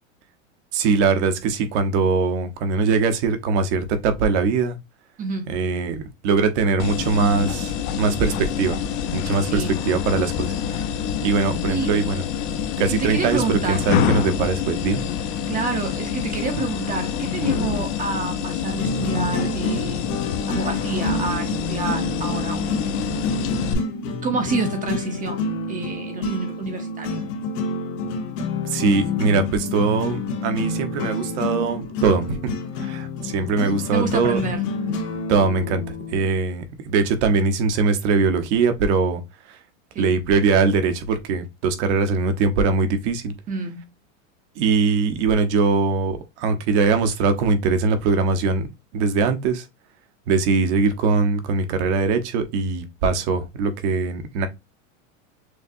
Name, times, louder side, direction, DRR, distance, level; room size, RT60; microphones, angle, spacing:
voice 1, 0.7-4.8 5.5-8.8 9.1-10.5 11.2-12.2 12.8-15.0 28.7-32.5 32.8-34.4 35.3-35.8 36.1-39.2 40.0-43.3 44.6-48.7 48.9-49.6 50.3-54.5, right 4 dB, 60° right, 1.0 m, -21 dB
voice 2, 5.2-5.6 9.4-9.8 11.7-11.9 13.0-13.9 15.5-23.0 24.2-27.2 33.9-34.6 39.9-40.2 43.5-43.8, right 4 dB, 20° right, 0.7 m, -28 dB
sound 1, 6.8-23.7, left 8 dB, 45° left, 0.7 m, -26 dB
sound 2, 17.4-36.2, left 3 dB, 70° left, 1.5 m, -28 dB
6.4 x 2.3 x 2.6 m
supercardioid pair, 140°, 39 cm